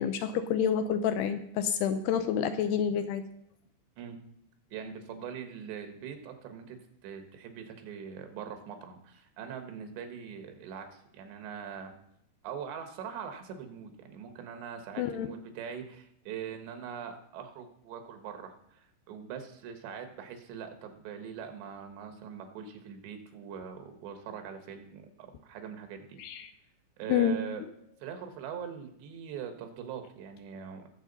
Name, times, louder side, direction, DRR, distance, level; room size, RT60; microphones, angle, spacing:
voice 1, 0.0-3.2 15.0-15.3 26.2-26.5 27.1-27.4, left 8 dB, 80° left, 9 dB, 2.5 m, -28 dB
voice 2, 4.7-6.8 7.0-12.0 12.4-26.2 27.0-27.6 28.0-30.9, right 7 dB, 80° right, 6 dB, 3.4 m, -42 dB
20.5 x 7.4 x 4.0 m, 0.74 s
omnidirectional pair, 5.0 m